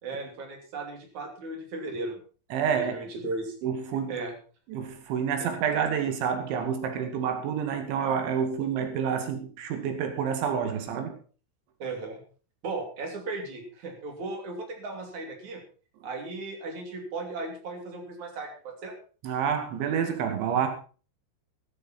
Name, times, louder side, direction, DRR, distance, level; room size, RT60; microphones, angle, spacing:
voice 1, 0.0-2.2 2.8-3.5 4.1-4.3 5.4-5.5 11.8-12.2 12.6-15.6 16.0-18.9, right 3 dB, 45° right, 3.9 m, -36 dB
voice 2, 2.5-3.0 3.6-4.2 4.7-11.1 19.2-20.7, right 7 dB, 75° right, 4.4 m, -28 dB
14.0 x 13.0 x 4.4 m
omnidirectional pair, 5.5 m